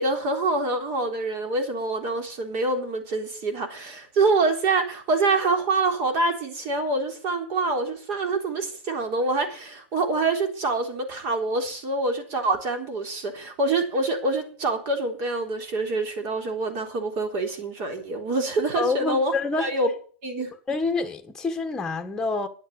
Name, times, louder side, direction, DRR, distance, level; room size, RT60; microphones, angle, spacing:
voice 1, 0.0-19.3 19.6-19.9 20.2-20.5, right 3 dB, 40° right, 3.7 m, -26 dB
voice 2, 18.7-19.7 20.7-22.5, left 3 dB, 10° left, 1.6 m, -27 dB
10.0 x 8.0 x 8.8 m
supercardioid pair, 145°, 7 cm